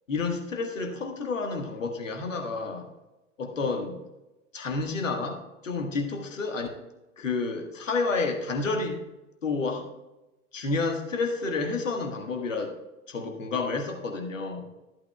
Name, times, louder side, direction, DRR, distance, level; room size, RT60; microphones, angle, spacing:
voice 1, 0.1-2.9 3.4-4.0 4.5-6.7 7.2-9.0 9.4-9.9 10.5-12.7 13.1-14.6, left 3 dB, 75° left, 3 dB, 1.6 m, -30 dB
14.0 x 8.5 x 2.3 m, 1.0 s
figure-of-eight pair, 85°, 38 cm